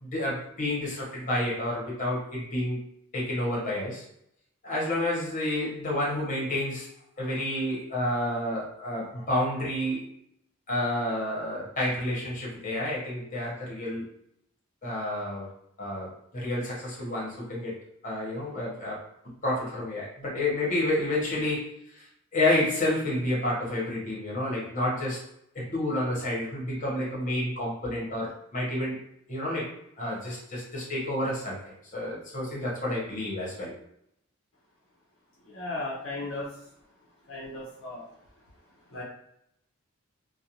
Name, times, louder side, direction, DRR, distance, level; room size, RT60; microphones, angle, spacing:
voice 1, 0.0-2.8 3.1-4.0 4.6-6.9 7.2-10.1 10.7-14.1 14.8-15.5 15.8-17.7 18.0-19.0 19.4-21.7 21.9-22.1 22.3-25.2 25.5-29.0 29.3-33.7, left 1 dB, 35° left, -5 dB, 1.0 m, -30 dB
voice 2, 35.5-36.5 37.3-38.0 38.9-39.0, left 2 dB, 60° left, -6 dB, 0.7 m, -35 dB
2.4 x 2.2 x 2.9 m, 0.75 s
head